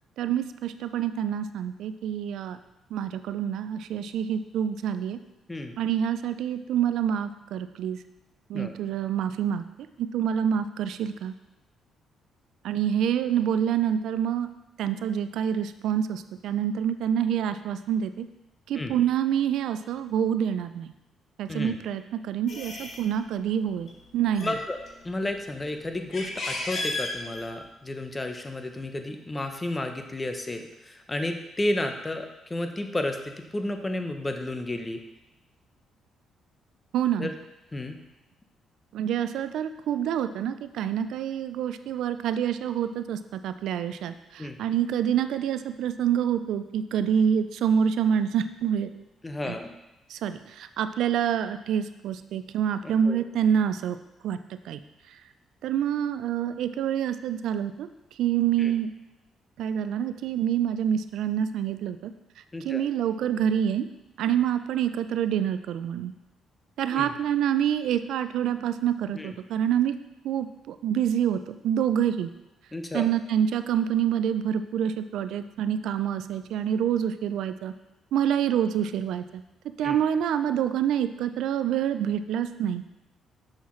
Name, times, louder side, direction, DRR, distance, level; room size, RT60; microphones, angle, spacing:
voice 1, 0.2-2.6 2.9-5.2 5.8-8.0 8.5-9.6 10.0-11.3 12.6-14.5 14.8-18.3 18.7-20.9 21.4-24.5 36.9-37.3 38.9-48.9 49.5-49.6 50.1-54.0 54.2-54.4 54.7-54.8 55.6-57.9 58.2-58.9 59.6-62.1 62.6-63.9 64.2-66.1 66.8-70.0 70.2-72.3 72.9-77.7 78.1-79.4 79.8-82.8, right 9 dB, 80° right, 11 dB, 0.3 m, -27 dB
sound 1, 22.5-23.0 23.7-23.9 24.2-25.3 25.8-27.7, left 2 dB, 55° left, 1.3 m, -33 dB
voice 2, 24.4-24.8 25.0-35.0 37.2-37.3 37.7-38.0 44.4-44.6 49.2-49.8 52.8-53.2 58.6-58.7 62.5-62.8 66.9-67.1 69.1-69.3 72.7-73.1 79.8-80.0, left 1 dB, 20° left, 6 dB, 0.7 m, -32 dB
6.3 x 5.5 x 3.1 m, 0.96 s
cardioid pair, 90°, 0 cm